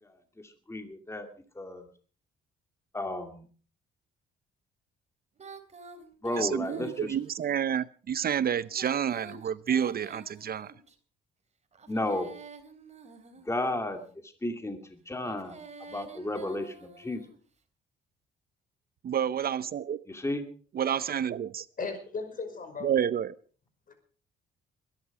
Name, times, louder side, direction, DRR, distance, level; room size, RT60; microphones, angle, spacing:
voice 1, 0.0-1.3 1.5-1.9 2.9-3.4 6.2-7.1 11.9-12.3 13.4-15.6 15.9-17.2 20.1-20.4, left 1 dB, 15° left, 2.4 m, -33 dB
Female singing, 5.4-7.5 8.6-10.9 11.7-13.9 15.1-17.4, right 4 dB, 35° right, 3.4 m, -48 dB
voice 2, 6.4-10.7 19.0-20.0 20.8-21.7 22.8-23.4, right 9 dB, 50° right, 0.6 m, -29 dB
voice 3, 21.8-22.9 23.9-24.0, left 4 dB, 45° left, 5.6 m, -36 dB
22.0 x 11.5 x 4.9 m
cardioid pair, 90°, 20 cm